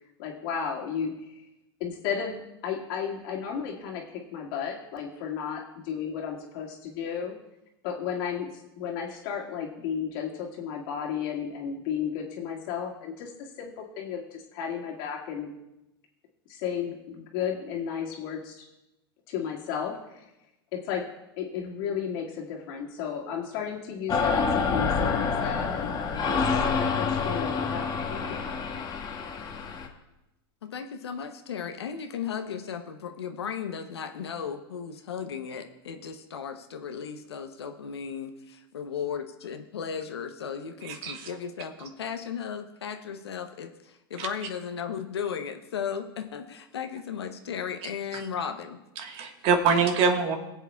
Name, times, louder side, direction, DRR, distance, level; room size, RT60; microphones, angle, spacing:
voice 1, 0.2-1.3 1.8-7.3 7.8-15.5 16.5-18.7 19.3-20.3 20.7-21.1 21.4-28.5, left 7 dB, 60° left, 0 dB, 2.1 m, -34 dB
sound 1, 24.1-29.9, left 5 dB, 30° left, 1.3 m, -27 dB
voice 2, 30.6-38.3 38.7-48.8, left 7 dB, 90° left, 7 dB, 0.8 m, -35 dB
voice 3, 40.8-41.2 44.2-44.3 49.0-50.4, right 5 dB, 50° right, 5 dB, 1.4 m, -24 dB
22.5 x 7.9 x 2.3 m, 0.93 s
hypercardioid pair, 110°, 13 cm